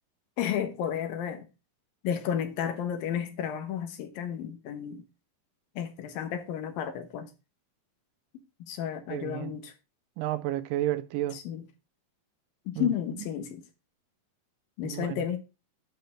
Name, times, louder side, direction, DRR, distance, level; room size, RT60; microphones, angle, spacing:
voice 1, 0.4-1.5 2.0-5.1 5.8-7.3 8.6-9.7 11.3-11.6 12.7-13.6 14.8-15.4, left 9 dB, 85° left, 3.1 m, -32 dB
voice 2, 9.1-9.6 10.2-11.4 12.8-12.9 14.8-15.3, right 14 dB, 80° right, 2.3 m, -31 dB
10.5 x 4.5 x 5.8 m
omnidirectional pair, 4.0 m